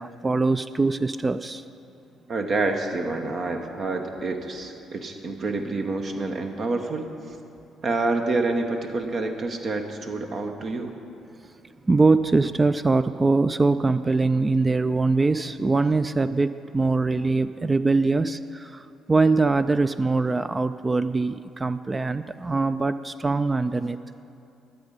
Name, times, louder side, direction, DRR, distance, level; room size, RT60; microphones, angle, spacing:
voice 1, 0.0-1.6 11.9-24.0, right 3 dB, 25° right, 12 dB, 0.3 m, -22 dB
voice 2, 2.3-7.4 7.8-10.9, right 3 dB, 55° right, 5 dB, 0.8 m, -28 dB
13.0 x 7.1 x 5.3 m, 2.6 s
hypercardioid pair, 55°, 0 cm